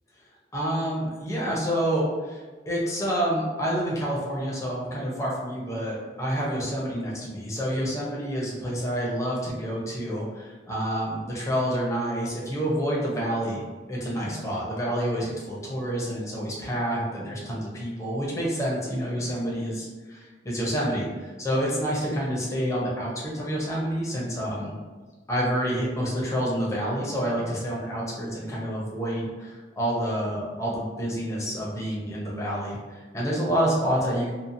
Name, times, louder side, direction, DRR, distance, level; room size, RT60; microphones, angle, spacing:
voice 1, 0.5-2.4 2.7-13.6 13.9-24.8 25.3-34.3, equal, 20° left, -5 dB, 0.6 m, -28 dB
2.7 x 2.2 x 2.6 m, 1.4 s
head